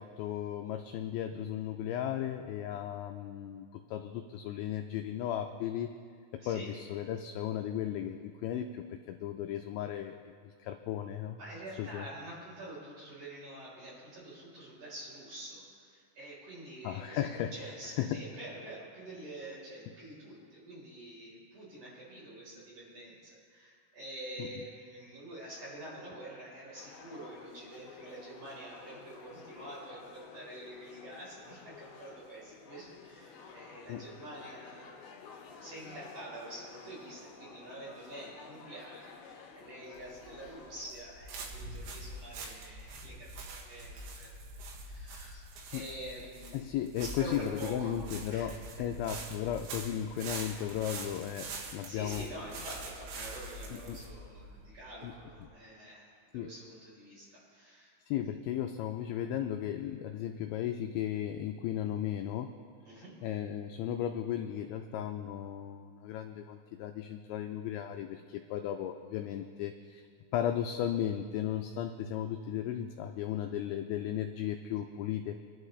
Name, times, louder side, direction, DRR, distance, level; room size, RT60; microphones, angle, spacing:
voice 1, 0.0-5.9 6.3-11.4 11.8-12.1 16.8-17.5 18.0-18.2 24.4-24.5 33.9-34.1 45.7-45.8 46.5-52.3 53.7-54.0 55.0-55.1 55.4-55.5 56.3-56.5 58.1-62.5 62.9-70.1 70.3-75.4, left 10 dB, 85° left, 5 dB, 2.6 m, -35 dB
voice 2, 6.4-6.7 11.4-44.3 44.6-45.4 45.7-46.7 47.2-47.9 48.3-48.5 48.8-48.9 51.9-57.9 62.9-63.2, right 1 dB, 40° right, -7 dB, 5.1 m, -47 dB
sound 1, 26.8-40.9, left 5 dB, 70° left, 2.6 m, -52 dB
sound 2, 40.0-55.5, right 2 dB, 90° right, 4.4 m, -45 dB
24.0 x 11.5 x 3.2 m, 2.1 s
omnidirectional pair, 5.9 m